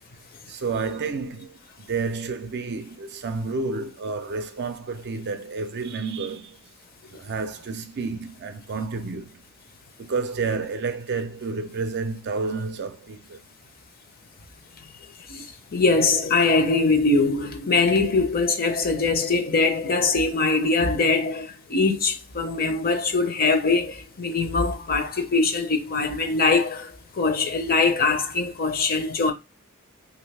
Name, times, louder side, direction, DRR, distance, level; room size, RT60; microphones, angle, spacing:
voice 1, 0.5-6.6 7.1-9.4 10.0-13.4, right 4 dB, 50° right, 0.5 m, -30 dB
voice 2, 15.7-26.9 27.2-29.3, left 3 dB, 45° left, 0.7 m, -22 dB
3.0 x 2.6 x 3.2 m
head